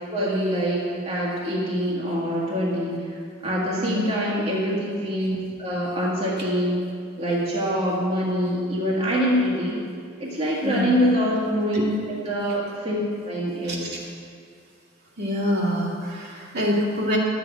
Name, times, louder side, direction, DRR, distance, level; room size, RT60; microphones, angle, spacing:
voice 1, 0.1-6.8 7.2-9.8 10.2-14.0, equal, 30° right, -6 dB, 1.7 m, -25 dB
voice 2, 3.8-4.1 10.6-10.9 11.7-11.8 13.6-13.9 15.2-17.2, equal, 55° right, -4 dB, 2.1 m, -26 dB
12.0 x 8.3 x 5.0 m, 2.2 s
head